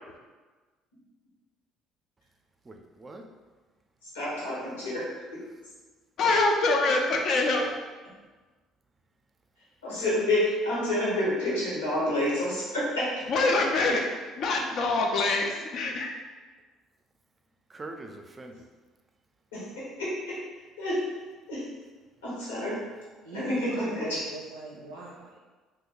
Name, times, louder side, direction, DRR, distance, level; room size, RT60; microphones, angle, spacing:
voice 1, 2.6-3.3 17.7-18.7, right 2 dB, 30° right, 4 dB, 0.5 m, -43 dB
voice 2, 4.1-5.4 9.8-13.4 19.5-20.4 20.8-21.0 21.5-21.6 22.2-22.8 23.3-24.2, left 1 dB, 85° left, -8 dB, 1.1 m, -29 dB
voice 3, 6.2-7.6 13.3-14.1 14.4-16.1, left 3 dB, 55° left, 2 dB, 0.5 m, -25 dB
voice 4, 23.2-25.4, right 1 dB, 85° right, -3 dB, 0.4 m, -40 dB
2.8 x 2.5 x 3.9 m, 1.3 s
hypercardioid pair, 55°, 0 cm